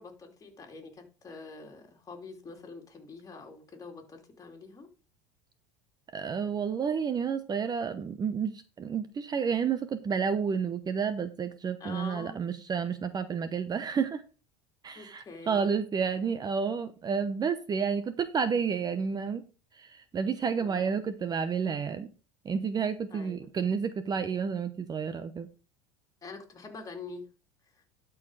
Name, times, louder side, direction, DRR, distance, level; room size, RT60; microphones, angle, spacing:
voice 1, 0.0-4.9 11.8-12.4 14.9-15.7 20.6-20.9 23.1-23.5 26.2-27.3 27.8-27.9, left 4 dB, 25° left, 2 dB, 3.0 m, -45 dB
voice 2, 6.1-14.2 14.8-19.4 19.8-22.1 22.4-25.5, right 6 dB, 30° right, 12 dB, 0.9 m, -30 dB
12.0 x 4.8 x 4.9 m, 0.35 s
supercardioid pair, 100°, 14 cm